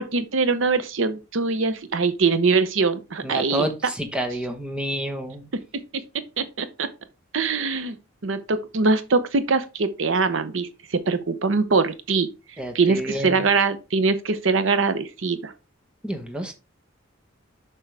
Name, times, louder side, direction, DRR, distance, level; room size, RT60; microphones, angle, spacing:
voice 1, 0.0-3.7 6.4-6.9 7.3-8.0 8.2-12.3 12.7-15.5, right 4 dB, 70° right, 0.8 m, -22 dB
voice 2, 3.2-5.5 12.6-13.5 16.0-16.5, right 1 dB, 5° right, 1.1 m, -29 dB
7.5 x 6.1 x 3.3 m
head